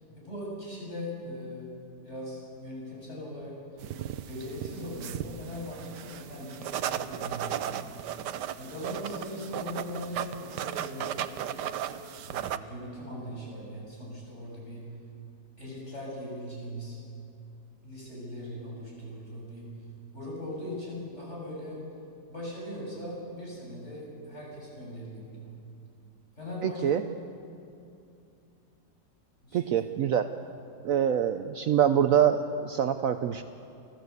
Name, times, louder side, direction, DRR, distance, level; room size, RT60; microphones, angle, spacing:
voice 1, 0.2-1.7 2.0-3.6 4.2-7.8 8.6-11.7 12.2-14.9 15.6-17.0 17.8-19.7 20.1-21.8 22.3-25.5 26.4-27.2 29.4-29.8, left 1 dB, 40° left, -4 dB, 7.5 m, -40 dB
sound 1, 3.8-12.6, right 10 dB, 90° right, 1.4 m, -36 dB
voice 2, 26.6-27.0 29.5-30.3 30.8-33.4, right 9 dB, 65° right, 9 dB, 1.0 m, -25 dB
29.5 x 13.5 x 8.2 m, 2.6 s
omnidirectional pair, 1.8 m